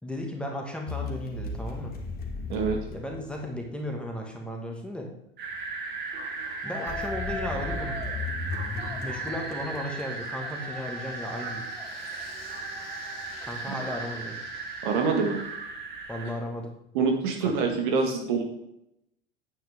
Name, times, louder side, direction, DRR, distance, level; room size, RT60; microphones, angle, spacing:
voice 1, 0.0-1.9 2.9-5.1 6.6-8.0 9.0-11.7 13.4-14.4 16.1-16.7, left 1 dB, 5° left, 0 dB, 2.0 m, -35 dB
sound 1, 0.9-3.9 6.9-10.3, left 4 dB, 30° left, 1.7 m, -36 dB
sound 2, 5.4-16.3, right 4 dB, 35° right, 2.3 m, -36 dB
Yell, 6.6-8.2 8.7-15.5, left 3 dB, 80° left, 2.6 m, -43 dB
voice 2, 14.8-15.4 16.9-18.4, right 5 dB, 55° right, 3 dB, 1.7 m, -25 dB
9.4 x 8.6 x 3.7 m, 0.80 s
figure-of-eight pair, 70°, 29 cm